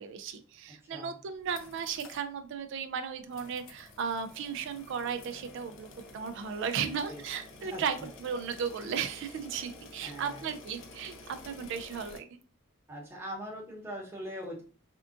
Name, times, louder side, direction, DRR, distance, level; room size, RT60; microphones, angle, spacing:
voice 1, 0.0-5.9 6.1-12.3, right 6 dB, 60° right, 9 dB, 0.3 m, -35 dB
voice 2, 0.8-1.2 6.8-7.2 7.6-8.1 10.0-10.5 12.9-14.6, equal, 10° right, -2 dB, 0.9 m, -42 dB
sound 1, 1.3-2.3 2.6-2.7 3.3-12.2, left 2 dB, 60° left, 0.5 m, -50 dB
3.5 x 2.3 x 2.5 m, 0.39 s
head